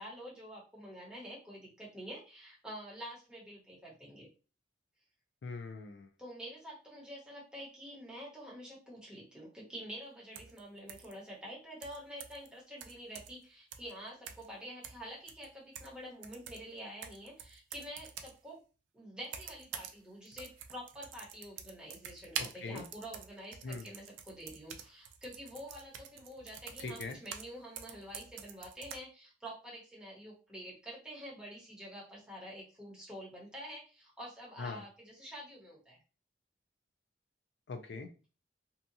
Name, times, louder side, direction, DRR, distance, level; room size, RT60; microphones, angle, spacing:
voice 1, 0.0-4.3 6.2-18.6 18.9-36.0, equal, 5° right, -5 dB, 1.0 m, -47 dB
voice 2, 5.4-6.1 22.4-22.8 23.6-23.9 26.8-27.2 34.6-34.8 37.7-38.1, left 3 dB, 65° left, 6 dB, 0.4 m, -41 dB
sound 1, 10.4-10.6 10.9-11.1 11.8-12.5 12.8-13.4 13.7-13.9 14.3-14.5 14.8-18.4 19.2-20.0 20.3-27.5 27.8-29.0, right 8 dB, 90° right, 0.4 m, -46 dB
2.7 x 2.3 x 2.6 m, 0.34 s
head